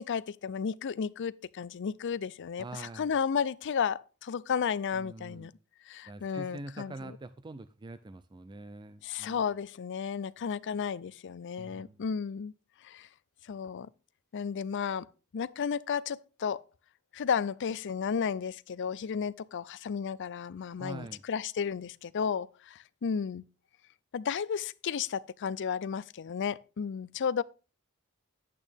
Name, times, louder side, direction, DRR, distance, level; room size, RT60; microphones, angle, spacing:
voice 1, 0.0-5.5 5.9-7.1 9.0-12.5 12.8-13.1 13.5-13.9 14.3-15.1 15.3-16.6 17.1-23.4 24.1-27.4, left 6 dB, 55° left, 0.4 m, -33 dB
voice 2, 2.6-3.1 4.9-5.5 6.1-9.4 11.6-12.0 20.8-21.2, right 2 dB, 20° right, 0.4 m, -44 dB
11.0 x 8.5 x 3.5 m
head